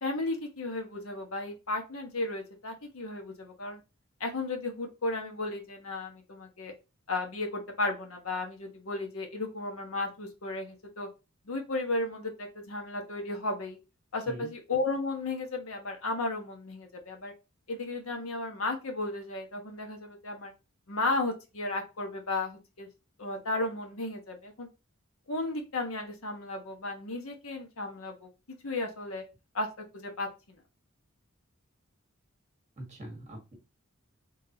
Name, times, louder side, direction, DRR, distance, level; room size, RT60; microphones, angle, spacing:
voice 1, 0.0-3.8 4.2-6.7 7.1-11.1 11.5-13.8 14.1-17.3 17.7-20.5 20.9-22.9 23.2-24.7 25.3-28.3 28.6-29.2 29.5-29.7 29.9-30.6, left 2 dB, 90° left, 3 dB, 1.2 m, -34 dB
voice 2, 32.8-33.6, right 1 dB, 35° right, 1 dB, 1.5 m, -43 dB
3.9 x 3.6 x 2.9 m, 0.27 s
head